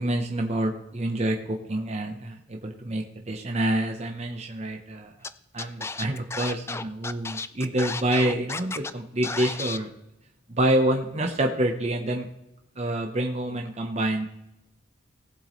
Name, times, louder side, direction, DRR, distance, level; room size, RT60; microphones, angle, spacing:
voice 1, 0.0-5.1 5.5-9.9 10.5-12.3 12.8-14.3, right 1 dB, 35° right, 3 dB, 0.8 m, -27 dB
Scratching (performance technique), 5.2-5.3 5.6-8.9 9.2-9.8, left 4 dB, 15° left, 0.3 m, -33 dB
18.5 x 8.0 x 3.1 m, 0.90 s
head